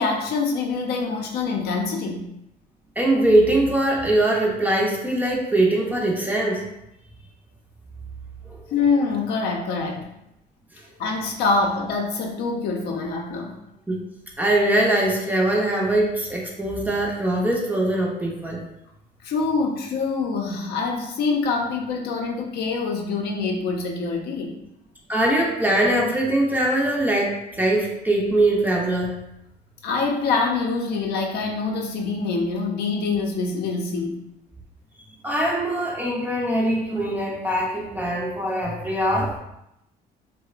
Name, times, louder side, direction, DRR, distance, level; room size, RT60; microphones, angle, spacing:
voice 1, 0.0-2.3 8.7-10.1 11.0-13.6 19.2-24.5 29.8-34.2, left 4 dB, 70° left, 1 dB, 0.5 m, -25 dB
voice 2, 3.0-6.6 8.5-8.6 13.9-14.0 14.4-18.6 25.1-29.2 35.2-39.3, right 1 dB, 10° right, -2 dB, 0.5 m, -22 dB
2.7 x 2.0 x 2.4 m, 0.84 s
cardioid pair, 110°, 17 cm